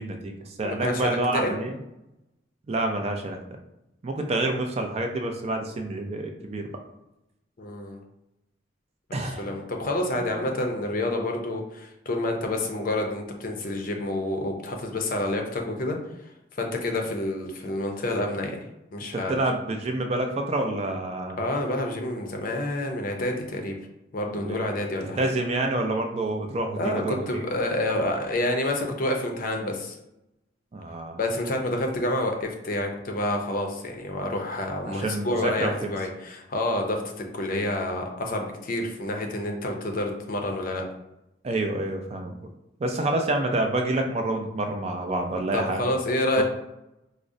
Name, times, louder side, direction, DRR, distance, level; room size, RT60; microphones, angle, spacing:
voice 1, 0.0-1.8 2.7-3.4 4.0-6.7 9.1-9.6 10.4-10.5 19.3-21.4 24.3-24.6 25.0-27.5 30.7-31.2 34.8-35.9 41.4-42.4 42.8-45.8 46.4-46.5, right 2 dB, 35° right, 4 dB, 0.3 m, -28 dB
voice 2, 0.6-1.5 7.6-8.0 9.1-16.0 16.6-18.6 18.9-19.4 21.4-23.7 24.1-25.2 26.8-30.0 31.2-37.0 37.3-40.8 45.5-46.4, left 1 dB, 50° left, 3 dB, 0.5 m, -28 dB
4.8 x 2.0 x 2.5 m, 0.89 s
head